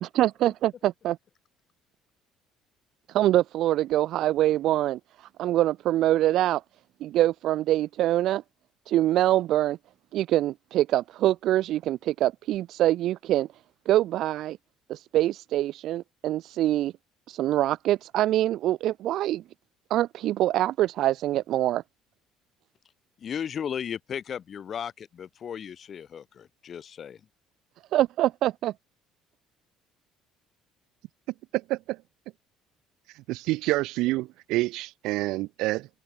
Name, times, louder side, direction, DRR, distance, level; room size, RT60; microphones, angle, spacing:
voice 1, 0.0-1.2 3.1-6.6 7.0-8.4 8.9-9.8 10.1-13.5 13.9-14.6 14.9-16.9 17.3-19.4 19.9-21.8 27.9-28.7, right 14 dB, 50° right, 0.3 m, -24 dB
voice 2, 23.2-27.2, left 8 dB, 30° left, 2.0 m, -35 dB
voice 3, 31.5-32.0 33.1-35.9, right 19 dB, 70° right, 2.7 m, -28 dB
cardioid pair, 175°, 0 cm